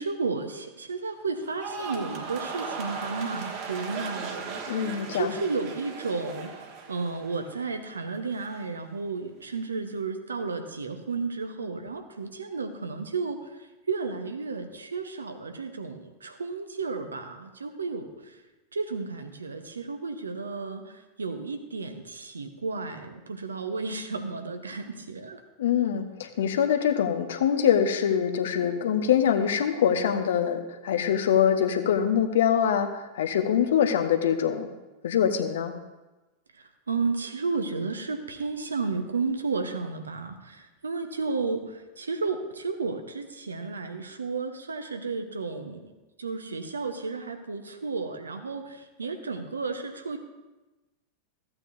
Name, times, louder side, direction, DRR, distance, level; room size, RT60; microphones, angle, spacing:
voice 1, 0.0-18.4 18.7-25.4 36.5-45.9 46.2-50.2, right 4 dB, 75° right, 7 dB, 0.8 m, -33 dB
sound 1, 1.4-7.7 8.0-8.6, right 4 dB, 40° right, 1.3 m, -37 dB
voice 2, 4.7-5.3 25.6-34.7 35.0-35.7, left 8 dB, 60° left, 8 dB, 0.8 m, -24 dB
14.5 x 8.8 x 2.6 m, 1.1 s
figure-of-eight pair, 90°, 0 cm